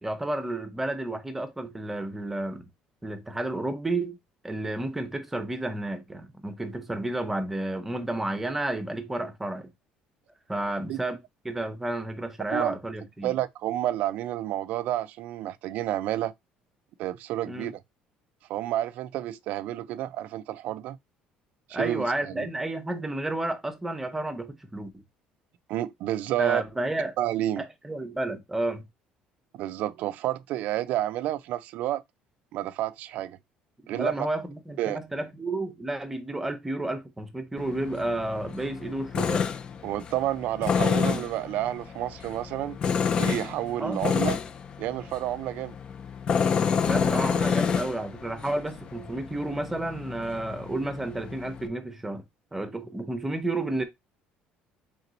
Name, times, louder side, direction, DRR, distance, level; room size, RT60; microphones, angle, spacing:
voice 1, 0.0-2.7 3.0-4.2 4.4-9.7 10.5-11.2 11.4-13.3 17.4-17.7 21.7-25.0 26.4-27.2 27.6-28.9 33.9-39.5 43.8-44.0 46.9-52.2 52.5-53.8, right 2 dB, 10° right, 0.7 m, -31 dB
voice 2, 13.2-16.3 17.0-17.8 18.5-21.0 21.7-22.5 25.7-26.6 27.2-27.6 29.5-32.0 32.5-33.4 33.9-34.3 34.8-35.0 39.8-42.8 43.2-44.4 44.8-45.7, right 13 dB, 60° right, 0.4 m, -30 dB
Tools, 37.6-51.7, left 6 dB, 30° left, 0.4 m, -29 dB
3.7 x 2.9 x 3.9 m
cardioid pair, 160°, 3 cm